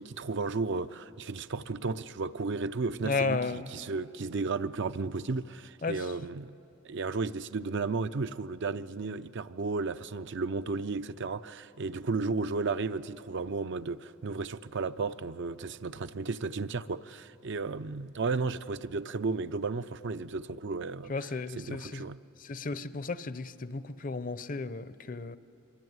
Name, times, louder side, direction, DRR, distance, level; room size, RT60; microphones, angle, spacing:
voice 1, 0.0-6.6 6.8-22.2, right 4 dB, 60° right, 0.6 m, -34 dB
voice 2, 3.0-3.7 5.8-6.0 21.1-22.0 22.4-25.4, left 4 dB, 40° left, 0.7 m, -33 dB
24.0 x 23.5 x 9.5 m
head